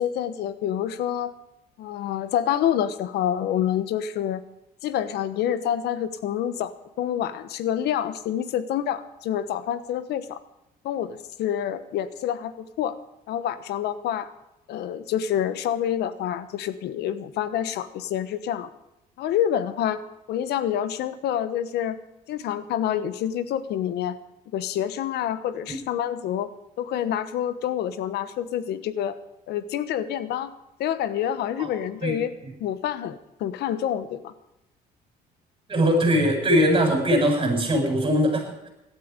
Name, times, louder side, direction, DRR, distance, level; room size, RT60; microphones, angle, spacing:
voice 1, 0.0-1.3 1.8-4.4 4.8-10.4 10.8-13.0 13.3-14.3 14.7-18.7 19.2-20.0 20.3-22.0 22.3-24.2 24.5-26.5 26.8-29.2 29.5-30.5 30.8-32.3 32.6-34.3, left 10 dB, 75° left, 13 dB, 1.2 m, -27 dB
voice 2, 35.7-38.7, equal, 30° right, 1 dB, 7.4 m, -21 dB
17.5 x 12.5 x 5.1 m, 0.91 s
cardioid pair, 110°, 17 cm